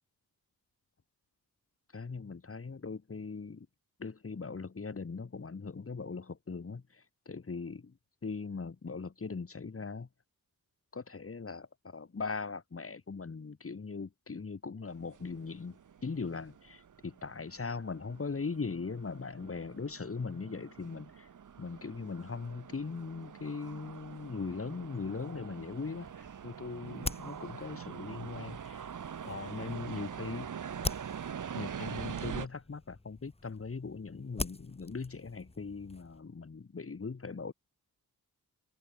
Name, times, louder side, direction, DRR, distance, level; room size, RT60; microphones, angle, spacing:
voice 1, 1.9-3.7 4.0-7.9 8.2-10.1 10.9-21.3 21.6-28.9 29.2-30.5 31.5-37.5, left 4 dB, 40° left, 4.2 m, -40 dB
sound 1, 14.9-32.5, right 7 dB, 55° right, 1.6 m, -44 dB
sound 2, 25.9-36.2, left 2 dB, 15° left, 4.5 m, -44 dB
open air
cardioid pair, 95°, 36 cm